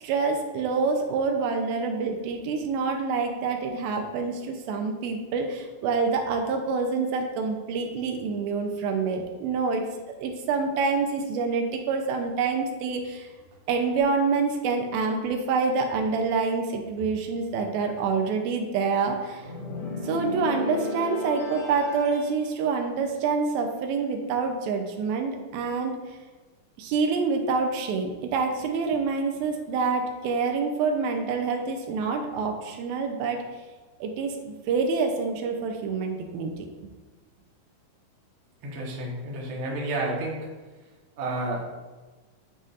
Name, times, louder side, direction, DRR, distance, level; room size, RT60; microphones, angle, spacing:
voice 1, 0.0-9.9 10.2-13.3 13.7-19.5 20.0-25.9 26.8-33.4 34.0-36.7, right 4 dB, 80° right, 3 dB, 2.5 m, -27 dB
sound 1, 19.4-22.4, left 3 dB, 60° left, 1.6 m, -34 dB
voice 2, 38.6-40.4 41.2-41.7, right 2 dB, 65° right, -3 dB, 1.3 m, -30 dB
9.9 x 4.0 x 2.5 m, 1.3 s
omnidirectional pair, 4.3 m